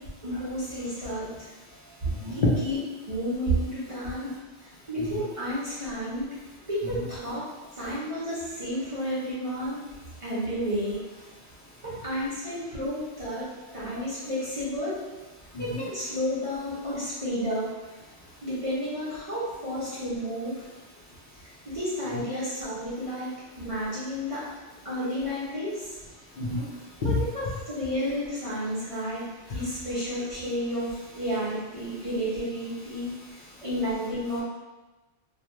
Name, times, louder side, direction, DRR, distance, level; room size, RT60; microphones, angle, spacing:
voice 1, 0.2-1.5 1.8-2.8 3.1-4.3 4.9-6.3 6.7-7.5 7.8-9.9 10.2-11.0 11.8-15.0 15.6-17.7 18.4-20.5 21.7-23.3 23.6-24.5 24.8-25.9 27.0-33.1 33.6-34.4, equal, 35° right, -10 dB, 0.6 m, -31 dB
voice 2, 0.8-2.5 4.0-4.4 5.0-5.1 6.8-7.0 9.9-10.2 10.4-10.5 11.3-11.8 13.7-13.8 15.5-15.9 18.2-18.5 20.6-21.2 21.4-21.8 22.1-22.2 23.5-23.7 26.2-27.2 28.9-29.1 29.5-29.6 31.9-32.1 32.9-33.7, left 2 dB, 60° left, -6 dB, 0.6 m, -34 dB
2.3 x 2.3 x 2.9 m, 1.2 s
omnidirectional pair, 1.2 m